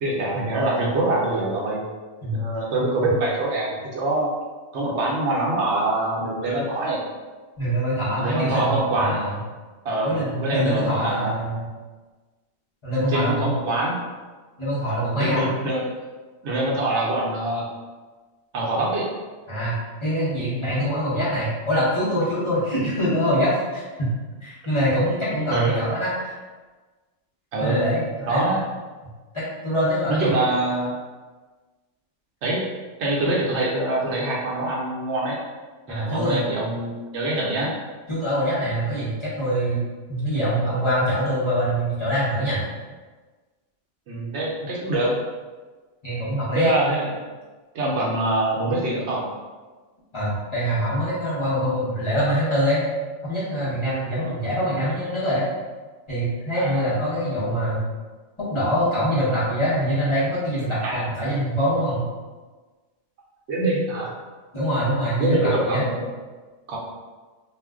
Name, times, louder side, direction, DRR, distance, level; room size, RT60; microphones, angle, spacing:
voice 1, 0.0-1.8 2.3-4.3 4.7-7.0 8.2-9.2 9.8-11.4 13.0-14.0 15.2-15.8 16.4-17.6 18.5-19.1 25.5-25.8 27.5-27.9 28.3-28.6 30.1-30.9 32.4-32.6 33.0-35.4 35.9-37.7 44.1-45.2 46.5-47.1 47.7-49.2 56.5-56.9 60.8-61.0 63.5-64.1 65.2-66.1 66.7-66.8, right 2 dB, 70° right, -3 dB, 0.9 m, -24 dB
voice 2, 7.6-9.3 10.0-11.7 12.8-13.5 14.6-15.5 19.5-19.8 20.0-24.1 24.4-26.4 27.6-28.6 29.3-30.4 35.9-36.4 38.1-39.8 40.1-42.7 46.0-46.8 50.1-52.8 53.2-55.5 56.1-57.8 58.4-62.1 64.5-65.8, equal, 30° left, -10 dB, 0.8 m, -24 dB
2.4 x 2.1 x 3.5 m, 1.3 s
omnidirectional pair, 1.3 m